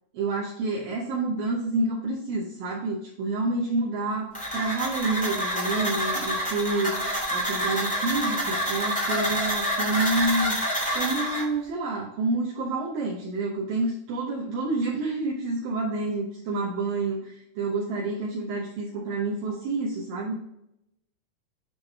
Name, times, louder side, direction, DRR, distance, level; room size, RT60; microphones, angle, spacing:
voice 1, 0.2-7.1 7.3-10.5 10.9-20.4, right 2 dB, 70° right, -4 dB, 2.6 m, -28 dB
sound 1, 4.3-11.4, equal, 5° left, 1.0 m, -27 dB
9.1 x 3.8 x 3.4 m, 0.81 s
omnidirectional pair, 4.5 m